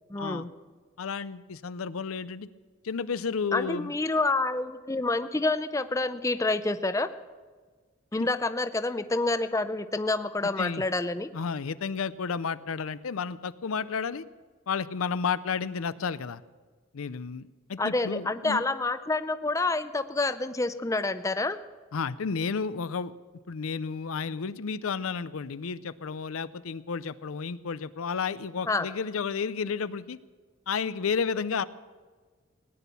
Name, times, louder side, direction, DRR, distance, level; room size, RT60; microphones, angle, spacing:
voice 1, 0.1-0.5 3.5-7.1 8.1-11.3 17.8-21.6 28.7-28.9, left 2 dB, 15° left, 11 dB, 0.5 m, -28 dB
voice 2, 1.0-2.5 2.8-3.9 8.1-8.3 10.6-10.8 11.3-14.2 14.7-16.4 16.9-18.6 21.9-23.1 23.5-30.2 30.7-31.6, left 5 dB, 90° left, 16 dB, 0.5 m, -32 dB
18.0 x 10.0 x 6.9 m, 1.4 s
head